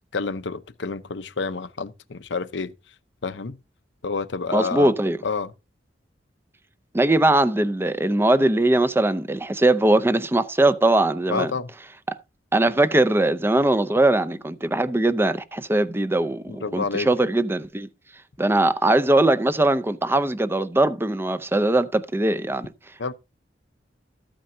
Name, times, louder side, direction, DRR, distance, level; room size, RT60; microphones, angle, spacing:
voice 1, 0.1-2.7 3.2-3.6 4.0-4.9 5.2-5.5 11.3-11.7 16.5-17.1 23.0-23.1, left 4 dB, 80° left, 0.8 m, -28 dB
voice 2, 4.5-5.2 6.9-11.5 12.5-17.9 18.4-22.7, right 2 dB, 15° right, 0.6 m, -20 dB
14.0 x 8.9 x 2.7 m
head